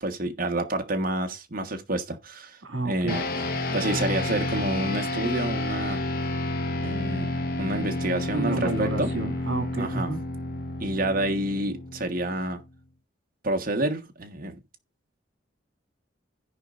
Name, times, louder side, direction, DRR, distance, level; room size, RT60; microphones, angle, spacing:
voice 1, 0.0-2.6 2.8-3.2 3.7-6.0 6.8-9.1 9.8-10.1 10.8-12.6 13.4-14.6, right 1 dB, 50° right, 1.3 m, -28 dB
voice 2, 2.6-3.2 8.3-10.2, right 2 dB, 80° right, 2.1 m, -30 dB
sound 1, 3.1-12.7, left 2 dB, 50° left, 0.9 m, -30 dB
16.0 x 5.3 x 2.5 m
head